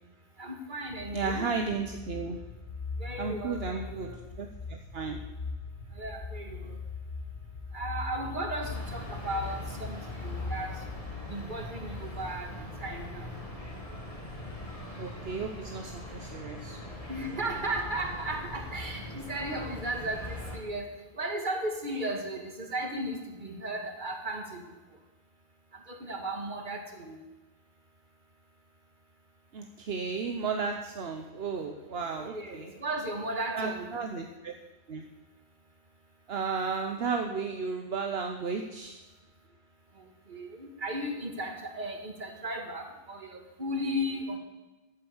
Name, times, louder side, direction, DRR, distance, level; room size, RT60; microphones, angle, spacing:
voice 1, 0.4-1.5 3.0-4.2 6.0-6.8 7.7-10.7 11.3-13.3 17.1-20.9 21.1-24.6 25.9-27.2 32.2-33.9 40.3-44.4, right 1 dB, 50° right, 3 dB, 2.0 m, -35 dB
sound 1, 0.9-20.6, left 4 dB, 55° left, 2.0 m, -42 dB
voice 2, 1.1-2.4 3.2-5.3 6.6-6.8 15.0-16.8 29.5-32.7 33.5-34.5 34.9-35.1 36.3-39.0, right 5 dB, 70° right, 4 dB, 1.2 m, -34 dB
sound 2, 8.6-20.6, equal, 35° left, 2.4 m, -42 dB
14.0 x 8.2 x 7.9 m, 1.1 s
omnidirectional pair, 1.1 m